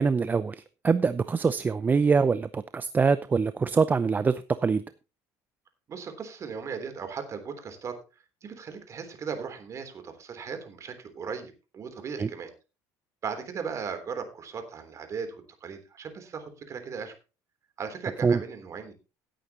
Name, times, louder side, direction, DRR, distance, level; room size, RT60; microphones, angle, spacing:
voice 1, 0.0-4.8 12.2-12.3 18.2-18.4, right 5 dB, 25° right, 14 dB, 0.6 m, -24 dB
voice 2, 5.9-8.0 8.4-12.5 13.2-15.4 15.6-17.1 17.8-18.9, right 6 dB, 40° right, 7 dB, 3.4 m, -37 dB
17.0 x 9.1 x 3.0 m, 0.31 s
cardioid pair, 115°, 8 cm